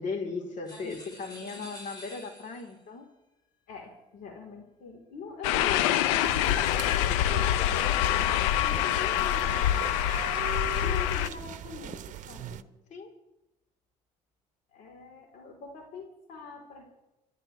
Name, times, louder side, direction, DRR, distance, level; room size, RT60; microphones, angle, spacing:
voice 1, 0.0-3.1 12.9-13.1, left 4 dB, 55° left, 2 dB, 3.9 m, -37 dB
sound 1, 0.6-2.8, left 1 dB, 25° left, 7.1 m, -48 dB
voice 2, 3.7-9.5 10.8-12.7 14.7-16.8, left 5 dB, 70° left, 1 dB, 4.0 m, -43 dB
sound 2, 5.4-11.3, left 12 dB, 85° left, 0.7 m, -25 dB
sound 3, 6.2-12.6, right 10 dB, 55° right, 0.9 m, -40 dB
30.0 x 12.5 x 3.4 m, 0.95 s
supercardioid pair, 75°, 15 cm